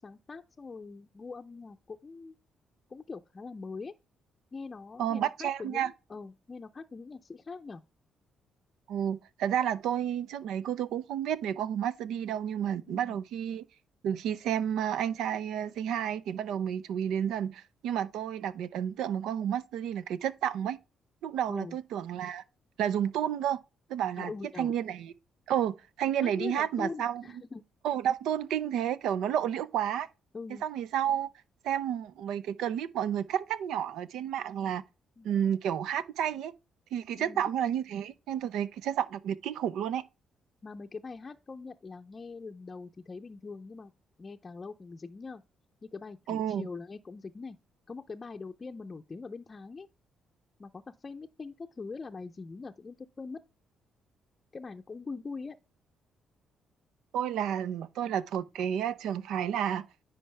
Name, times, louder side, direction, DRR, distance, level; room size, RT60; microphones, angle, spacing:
voice 1, 0.0-2.3 2.9-3.9 4.5-7.8 12.9-13.2 21.5-21.8 24.2-24.7 26.2-27.6 30.3-30.6 35.2-35.3 37.2-37.5 40.6-43.9 44.2-45.4 45.8-47.6 47.9-49.9 50.6-53.4 54.5-55.6, left 4 dB, 30° left, 0.5 m, -42 dB
voice 2, 5.0-5.9 8.9-13.6 14.0-20.8 21.2-22.4 22.8-23.6 23.9-24.3 24.6-25.1 25.5-27.2 27.8-30.1 30.6-31.3 31.6-34.8 35.2-36.5 36.9-40.0 46.3-46.7 57.1-59.9, right 9 dB, 85° right, 0.6 m, -31 dB
10.0 x 4.6 x 3.4 m
cardioid pair, 90°, 0 cm